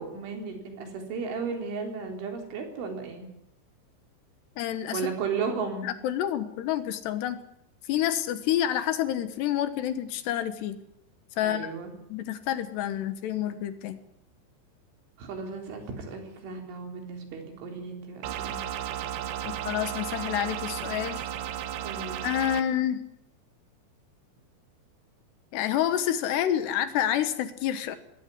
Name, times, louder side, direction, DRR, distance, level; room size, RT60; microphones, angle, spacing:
voice 1, 0.0-3.3 4.9-6.0 11.4-11.9 15.2-18.7 21.8-22.3, right 5 dB, 85° right, 3 dB, 6.2 m, -35 dB
voice 2, 4.6-5.0 5.8-7.4 7.9-10.8 11.4-11.7 12.1-14.0 19.4-21.2 22.2-23.1 25.5-28.0, left 11 dB, 70° left, 11 dB, 3.2 m, -28 dB
sound 1, 18.2-22.6, right 11 dB, 70° right, 2.8 m, -34 dB
21.5 x 16.0 x 9.5 m, 0.77 s
omnidirectional pair, 5.3 m